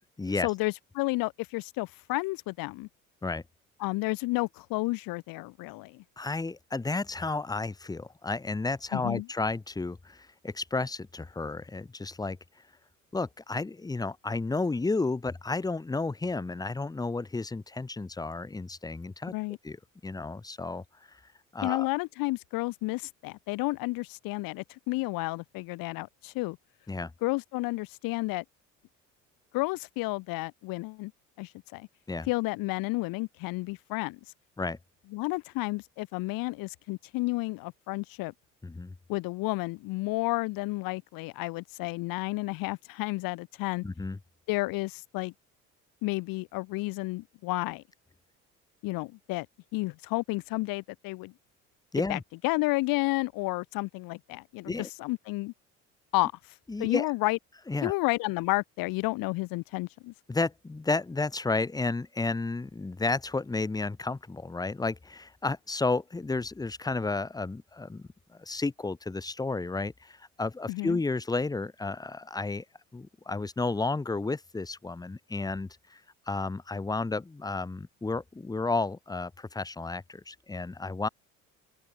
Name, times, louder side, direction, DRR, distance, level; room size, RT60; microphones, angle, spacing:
voice 1, 0.4-2.9 3.8-6.0 8.9-9.3 19.3-19.6 21.6-26.6 27.2-28.4 29.5-31.1 31.4-31.9 32.3-34.2 35.1-38.3 39.1-43.8 44.5-45.3 46.0-47.8 48.8-49.5 49.7-51.3 52.1-55.5 56.1-56.3 56.8-57.4 57.8-60.1 70.7-71.0, left 22 dB, 65° left, 2.2 m, -31 dB
voice 2, 6.2-12.4 13.1-19.3 19.6-19.8 20.0-21.2 21.5-21.9 26.9-27.1 32.1-32.3 34.6-34.8 38.6-38.9 43.8-44.2 51.9-52.2 54.7-54.9 56.7-57.0 57.7-57.9 60.3-68.1 68.4-72.6 72.9-76.0 76.3-81.1, left 3 dB, 10° left, 0.8 m, -32 dB
open air
hypercardioid pair, 60°, 37 cm